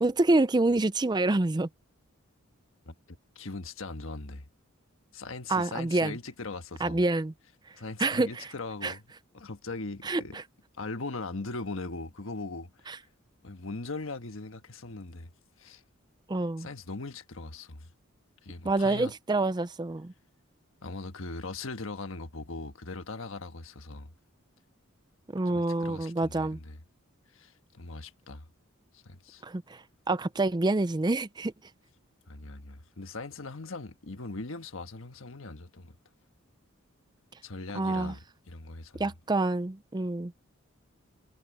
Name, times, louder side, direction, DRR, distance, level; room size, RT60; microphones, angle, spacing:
voice 1, 0.0-1.7 5.5-6.2 6.8-7.3 8.0-8.5 8.8-8.9 10.0-10.2 12.9-13.0 16.3-16.7 18.6-20.1 25.3-26.6 29.4-31.5 37.7-38.1 39.0-40.3, right 2 dB, 20° right, 0.5 m, -27 dB
voice 2, 2.9-4.4 5.1-7.0 7.7-9.0 9.3-10.4 10.8-13.0 13.4-15.3 15.6-15.8 16.6-17.9 18.4-19.1 20.8-24.1 25.4-26.8 27.3-28.5 28.9-29.4 32.3-35.9 37.4-38.2 38.5-39.1, left 3 dB, 70° left, 1.4 m, -40 dB
head